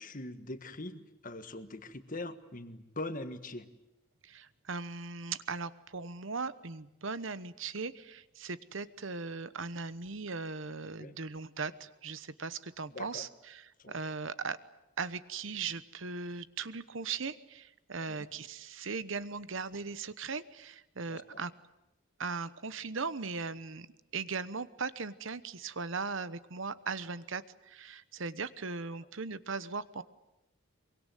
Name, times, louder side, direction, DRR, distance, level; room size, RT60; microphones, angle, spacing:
voice 1, 0.0-3.7 11.0-11.1 12.9-13.3 13.8-13.9 18.0-18.3 21.1-21.4, left 2 dB, 40° left, 10 dB, 1.6 m, -42 dB
voice 2, 4.2-14.6 15.0-21.5 22.2-23.9 24.1-30.0, right 4 dB, 60° right, 15 dB, 1.0 m, -38 dB
24.0 x 23.5 x 9.2 m, 0.92 s
head